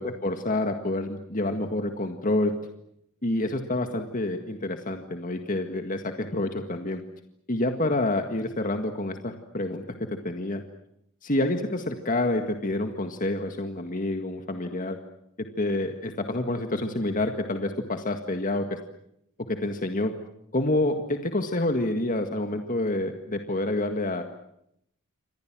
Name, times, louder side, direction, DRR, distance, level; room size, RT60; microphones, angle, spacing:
voice 1, 0.0-2.5 3.2-7.0 7.5-10.6 11.2-15.0 15.4-18.8 19.5-20.1 20.5-24.2, left 2 dB, 40° left, 6 dB, 1.8 m, -28 dB
29.0 x 26.0 x 6.2 m, 0.74 s
head